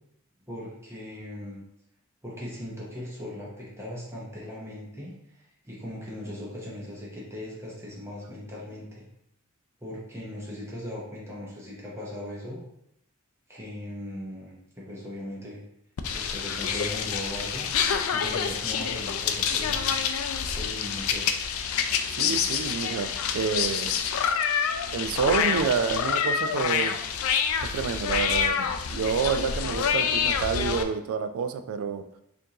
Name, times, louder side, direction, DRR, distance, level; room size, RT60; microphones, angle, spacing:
voice 1, 0.5-1.6 2.2-9.0 9.8-12.6 13.5-15.6 16.1-20.0 20.5-21.3, left 1 dB, 15° right, -6 dB, 0.8 m, -39 dB
sound 1, 16.0-30.8, left 7 dB, 75° left, 0.3 m, -27 dB
voice 2, 22.1-23.9 24.9-26.9 27.7-32.0, right 6 dB, 75° right, 9 dB, 0.3 m, -28 dB
4.4 x 2.6 x 2.9 m, 0.78 s
head